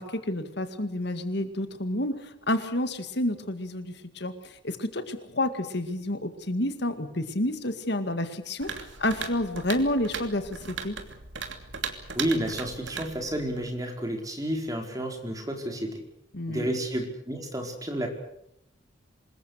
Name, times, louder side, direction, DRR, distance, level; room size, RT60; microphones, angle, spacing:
voice 1, 0.0-11.0 16.3-16.7, left 1 dB, 60° left, 10 dB, 2.1 m, -30 dB
sound 1, 8.6-13.8, right 6 dB, 75° right, 2.8 m, -38 dB
voice 2, 12.1-16.0 16.5-18.1, right 1 dB, 20° right, 3 dB, 4.8 m, -31 dB
26.5 x 21.5 x 6.6 m, 0.76 s
head